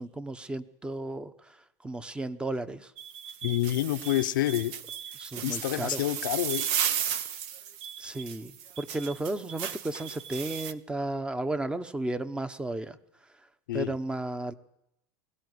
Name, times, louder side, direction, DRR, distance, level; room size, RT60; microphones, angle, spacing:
voice 1, 0.0-1.6 1.8-2.9 5.2-6.0 8.0-13.0 13.7-14.5, right 2 dB, 10° right, 12 dB, 1.1 m, -34 dB
sound 1, 3.0-10.7, right 9 dB, 60° right, 1.3 m, -35 dB
voice 2, 3.4-4.7 5.4-6.7 13.7-13.9, left 15 dB, 90° left, 8 dB, 1.0 m, -28 dB
22.5 x 17.0 x 9.7 m, 0.84 s
supercardioid pair, 125°, 10 cm